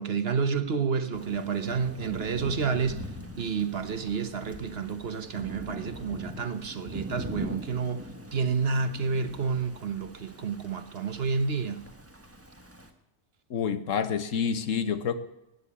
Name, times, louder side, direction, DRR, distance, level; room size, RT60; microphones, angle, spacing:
voice 1, 0.0-3.0 3.4-8.1 8.3-11.8, right 5 dB, 55° right, 1.2 m, -29 dB
Thunder / Rain, 1.1-12.9, equal, 10° right, 1.3 m, -42 dB
voice 2, 13.5-15.2, left 7 dB, 80° left, 1.4 m, -28 dB
15.5 x 9.7 x 8.4 m
omnidirectional pair, 1.3 m